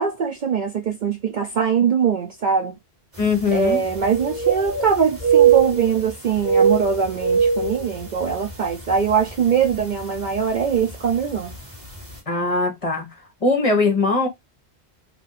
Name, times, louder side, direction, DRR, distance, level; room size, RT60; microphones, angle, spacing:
voice 1, 0.0-2.8 3.5-11.5, right 6 dB, 55° right, 0.5 m, -22 dB
voice 2, 3.2-3.8 12.3-13.1 13.4-14.3, left 3 dB, 35° left, 1.0 m, -20 dB
sound 1, 3.2-3.3 3.6-4.9 5.2-6.1 6.4-8.5 8.9-9.1 9.7-10.0 11.1-11.2 11.5-11.6, right 7 dB, 40° right, 1.7 m, -20 dB
3.2 x 2.6 x 3.9 m
omnidirectional pair, 1.1 m